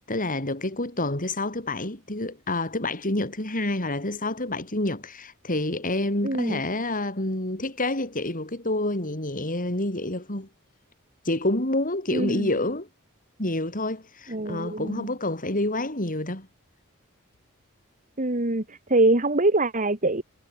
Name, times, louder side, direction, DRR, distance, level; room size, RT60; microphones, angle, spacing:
voice 1, 0.1-10.5 11.2-12.9 13.4-16.5, left 2 dB, 40° left, 5.9 m, -28 dB
voice 2, 6.2-6.6 12.1-12.5 14.3-15.1 18.2-20.2, right 2 dB, 35° right, 2.7 m, -24 dB
head